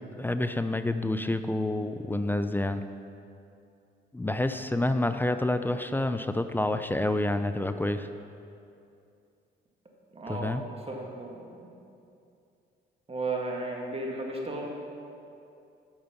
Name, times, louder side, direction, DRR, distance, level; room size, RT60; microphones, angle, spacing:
voice 1, 0.2-2.8 4.1-8.1 10.3-10.6, left 1 dB, 10° left, 9 dB, 0.4 m, -28 dB
voice 2, 10.1-11.5 13.1-14.7, right 2 dB, 30° right, 0 dB, 1.7 m, -34 dB
8.8 x 6.7 x 5.8 m, 2.6 s
cardioid pair, 90°, 20 cm